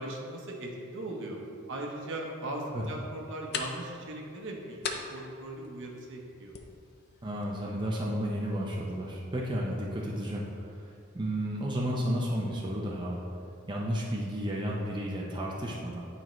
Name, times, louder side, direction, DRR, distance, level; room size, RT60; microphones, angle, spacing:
voice 1, 0.0-1.4 1.7-4.8 5.1-6.5, right 1 dB, 60° right, 0 dB, 1.0 m, -38 dB
sound 1, 2.5-9.5, left 5 dB, 50° left, 0.5 m, -43 dB
voice 2, 7.2-13.2 13.7-16.0, equal, 20° right, -3 dB, 0.6 m, -32 dB
9.7 x 4.4 x 3.1 m, 2.5 s
head